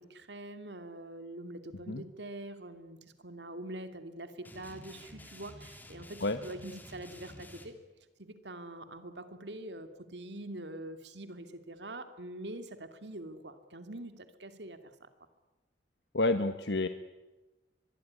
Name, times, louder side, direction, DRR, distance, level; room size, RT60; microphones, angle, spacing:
voice 1, 0.0-7.8 8.2-15.1, right 1 dB, 80° right, 9 dB, 2.7 m, -44 dB
sound 1, 4.4-7.7, left 1 dB, 10° left, 3.0 m, -51 dB
voice 2, 16.1-16.9, left 2 dB, 80° left, 9 dB, 1.3 m, -29 dB
24.0 x 22.0 x 9.9 m, 1.1 s
head